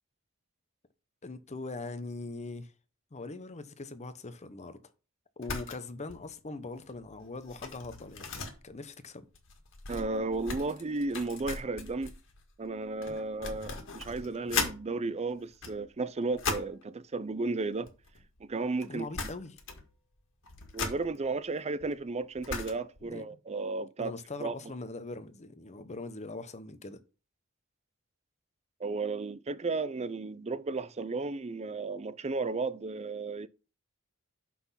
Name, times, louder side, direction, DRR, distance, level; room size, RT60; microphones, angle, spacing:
voice 1, 1.2-2.7 3.1-4.8 5.4-8.3 8.6-9.3 18.8-19.6 23.0-23.2 24.0-27.0, left 3 dB, 30° left, 0.8 m, -41 dB
sound 1, 5.4-5.8 6.1-6.3 6.7-14.8 15.4-16.8 17.7-18.5 18.8-18.9 19.1-19.9 20.2-23.0, left 4 dB, 65° left, 1.8 m, -39 dB
voice 2, 9.9-12.1 12.6-17.9 18.4-19.3 20.7-24.1 24.4-24.5 28.8-33.5, right 3 dB, 30° right, 0.5 m, -34 dB
6.0 x 5.9 x 5.7 m
head